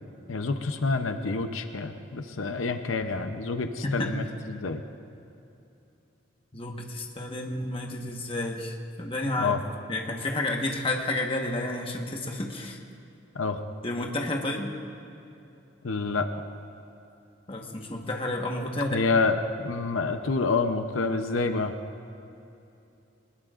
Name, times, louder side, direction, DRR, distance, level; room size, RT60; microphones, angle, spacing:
voice 1, 0.3-4.8 9.4-9.6 13.3-13.6 15.8-16.3 18.9-21.7, left 4 dB, 80° left, 7 dB, 0.7 m, -28 dB
voice 2, 6.5-9.6 9.9-12.8 13.8-14.8 17.5-19.0, left 2 dB, 25° left, 1 dB, 1.3 m, -31 dB
23.0 x 20.5 x 2.5 m, 2.8 s
head